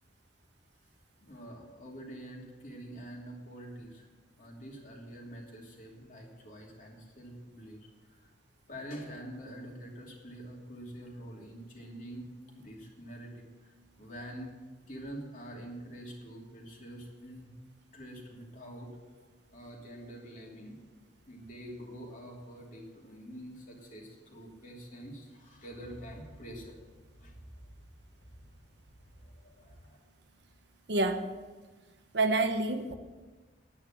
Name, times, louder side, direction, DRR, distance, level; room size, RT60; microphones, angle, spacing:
voice 1, 1.2-4.0 4.4-7.8 8.1-8.2 8.7-12.3 12.5-13.5 14.0-14.5 14.9-17.5 17.9-18.9 19.5-20.8 21.3-26.8 27.2-27.3 29.1-30.0, right 1 dB, 45° left, -1 dB, 2.8 m, -46 dB
voice 2, 30.9-31.3 32.1-32.9, right 2 dB, 70° right, 6 dB, 1.1 m, -27 dB
9.9 x 9.8 x 7.4 m, 1.3 s
head